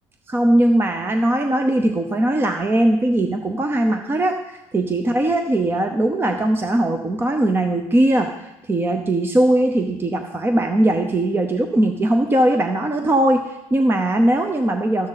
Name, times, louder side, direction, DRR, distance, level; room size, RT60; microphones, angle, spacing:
voice 1, 0.3-15.1, right 1 dB, 15° right, 6 dB, 0.7 m, -20 dB
13.0 x 10.5 x 4.1 m, 0.94 s
cardioid pair, 145°, 13 cm